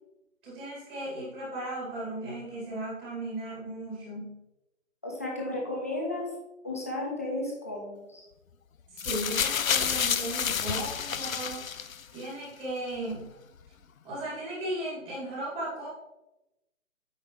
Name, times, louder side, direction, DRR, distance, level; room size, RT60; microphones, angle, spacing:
voice 1, 0.4-4.4 8.9-11.6 12.1-13.3 14.0-15.9, right 1 dB, 15° right, -6 dB, 2.2 m, -36 dB
voice 2, 5.0-6.3 6.6-8.2, left 1 dB, 10° left, -2 dB, 0.5 m, -33 dB
sound 1, 9.0-12.2 13.1-13.2, left 8 dB, 80° left, 0.6 m, -29 dB
8.7 x 5.7 x 3.1 m, 0.93 s
figure-of-eight pair, 155°, 41 cm